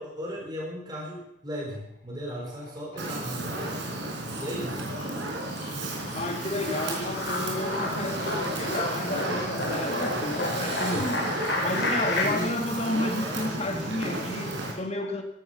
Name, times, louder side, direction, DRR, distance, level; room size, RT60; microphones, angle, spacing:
voice 1, 0.0-3.9 4.4-5.0 10.9-11.0 12.2-12.5, equal, 20° right, 4.5 m, -36 dB
sound 1, 2.3-3.1 3.5-12.3, left 2 dB, 70° left, 4.8 m, -33 dB
Fire, 3.0-14.7, right 1 dB, 65° right, 4.2 m, -32 dB
voice 2, 6.1-11.3 11.6-15.2, left 1 dB, 35° left, 2.1 m, -31 dB
16.0 x 13.5 x 5.7 m
head